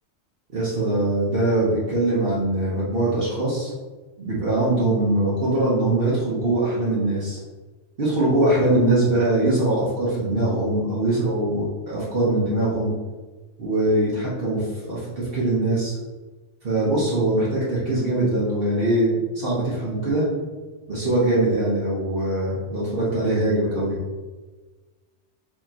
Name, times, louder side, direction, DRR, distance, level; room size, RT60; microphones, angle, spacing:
voice 1, 0.5-3.7 4.2-7.4 8.0-12.9 13.6-16.0 16.6-20.3 20.9-24.0, right 1 dB, 55° right, -7 dB, 1.1 m, -22 dB
4.5 x 2.9 x 2.8 m, 1.3 s
omnidirectional pair, 1.2 m